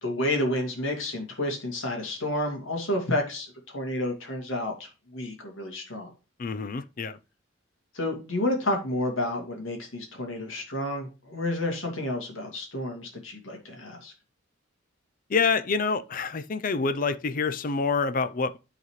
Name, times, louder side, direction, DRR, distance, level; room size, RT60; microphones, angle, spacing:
voice 1, 0.0-6.1 7.9-14.1, left 1 dB, 70° left, 2.3 m, -30 dB
voice 2, 6.4-7.2 15.3-18.6, left 4 dB, 40° left, 0.4 m, -27 dB
12.0 x 4.1 x 3.1 m
head